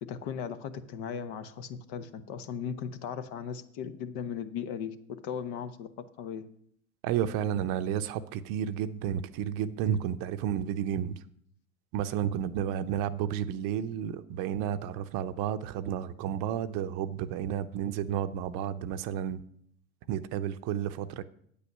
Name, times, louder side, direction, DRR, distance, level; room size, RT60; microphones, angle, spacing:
voice 1, 0.1-4.9 5.2-6.4, left 7 dB, 55° left, 11 dB, 1.0 m, -37 dB
voice 2, 7.0-11.1 11.9-19.4 20.1-21.2, right 9 dB, 55° right, 12 dB, 0.7 m, -31 dB
8.7 x 8.3 x 5.4 m, 0.69 s
hypercardioid pair, 75°, 42 cm